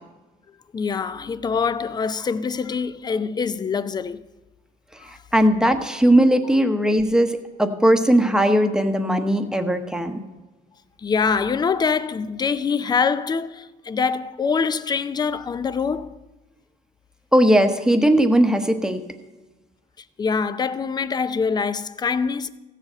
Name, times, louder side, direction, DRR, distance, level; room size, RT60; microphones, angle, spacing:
voice 1, 0.7-4.2 5.1-5.2 11.0-16.2 20.2-22.5, left 5 dB, 25° left, 0.5 m, -24 dB
voice 2, 5.1-10.2 17.3-19.0, right 1 dB, 5° right, 1.0 m, -18 dB
15.0 x 5.0 x 7.7 m
cardioid pair, 110°, 17 cm